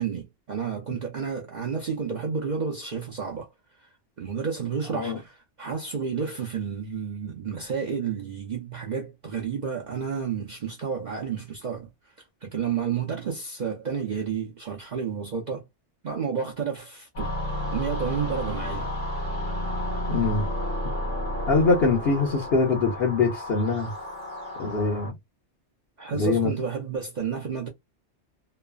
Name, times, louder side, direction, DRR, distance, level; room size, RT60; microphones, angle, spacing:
voice 1, 0.0-3.5 3.8-3.9 4.2-11.9 12.4-15.6 16.0-17.4 17.7-18.9 26.0-27.7, right 6 dB, 50° right, 0.6 m, -31 dB
sound 1, 17.2-25.1, left 1 dB, 90° left, 1.4 m, -31 dB
voice 2, 20.1-20.5 21.5-23.9 24.6-25.1 26.1-26.5, left 3 dB, 60° left, 1.0 m, -23 dB
3.1 x 2.0 x 2.3 m
omnidirectional pair, 1.2 m